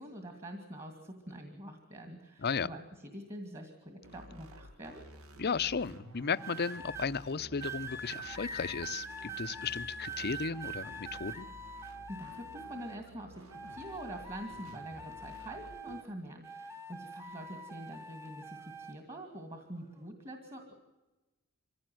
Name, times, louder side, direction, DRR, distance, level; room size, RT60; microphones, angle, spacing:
voice 1, 0.0-5.0 12.1-20.7, right 1 dB, 25° right, 6 dB, 2.3 m, -45 dB
voice 2, 2.4-2.7 5.4-11.5, left 5 dB, 45° left, 14 dB, 0.6 m, -35 dB
sound 1, 4.0-16.0, right 1 dB, 70° right, 1.6 m, -53 dB
sound 2, 6.4-7.1 7.6-13.1 13.5-16.1 16.4-19.0 19.7-20.0, right 2 dB, 10° right, 1.1 m, -44 dB
24.5 x 16.0 x 7.8 m, 1.1 s
head